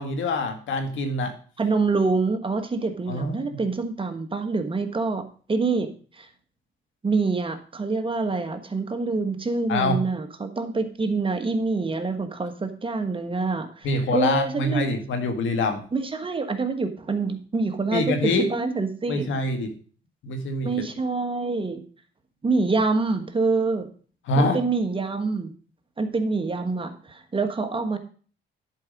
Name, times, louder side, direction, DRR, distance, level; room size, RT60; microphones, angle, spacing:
voice 1, 0.0-1.3 3.1-3.6 9.7-10.0 13.8-15.8 17.9-18.5 19.1-19.7 20.2-20.7 24.3-24.6, left 2 dB, 75° left, 6 dB, 1.8 m, -25 dB
voice 2, 1.6-6.3 7.0-15.0 15.9-19.4 20.6-21.8 22.4-23.9 24.3-25.5 26.0-28.0, right 3 dB, 25° right, 7 dB, 1.4 m, -26 dB
10.5 x 4.9 x 5.2 m, 0.41 s
cardioid pair, 90°, 20 cm